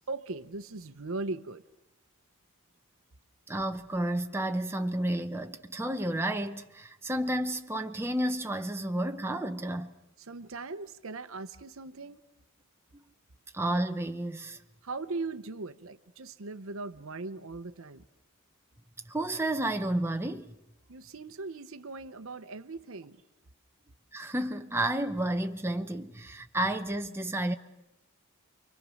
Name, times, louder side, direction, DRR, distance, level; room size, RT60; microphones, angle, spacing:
voice 1, 0.0-1.6 10.2-12.2 14.8-18.1 20.9-23.2, right 3 dB, 65° right, 0.8 m, -39 dB
voice 2, 3.5-9.9 13.5-14.6 19.1-20.5 24.1-27.5, right 1 dB, 10° right, 0.8 m, -31 dB
29.0 x 23.5 x 6.4 m
head